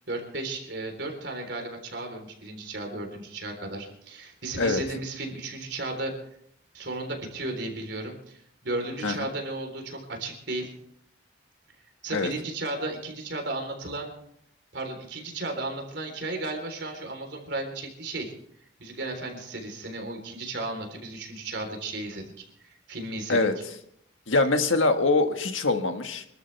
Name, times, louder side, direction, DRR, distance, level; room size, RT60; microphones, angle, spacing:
voice 1, 0.1-6.1 6.7-10.7 12.0-14.1 14.7-18.3 18.8-22.2 22.6-23.4, right 2 dB, 65° right, 3 dB, 3.8 m, -34 dB
voice 2, 24.3-26.3, left 3 dB, 90° left, 6 dB, 1.6 m, -23 dB
26.0 x 13.0 x 3.4 m, 0.69 s
head